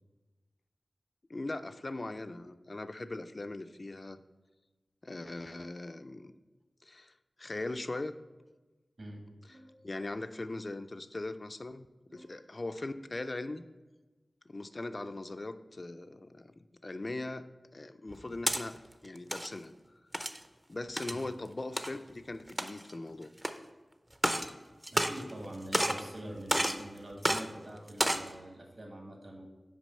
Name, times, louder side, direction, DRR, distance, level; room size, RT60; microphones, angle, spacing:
voice 1, 1.3-4.2 5.0-6.3 6.8-7.1 7.4-8.1 9.5-9.6 9.8-11.9 12.1-13.6 14.5-16.5 16.8-17.5 17.7-18.8 19.0-19.7 20.7-23.3, left 2 dB, 45° left, 10 dB, 0.4 m, -40 dB
voice 2, 9.5-9.8 12.1-12.4 21.1-21.2 24.9-29.5, right 1 dB, 60° right, 1 dB, 1.6 m, -45 dB
sound 1, 18.1-18.6 19.2-19.5 20.1-20.4 21.0-21.2 21.8-21.9 22.5-22.9 23.4-23.5 24.1-24.5 24.8-25.5 25.7-26.1 26.5-26.8 27.2-27.4 27.9-28.3, right 1 dB, 15° right, 0.5 m, -30 dB
6.1 x 4.9 x 5.5 m, 1.2 s
wide cardioid pair, 70°, 0 cm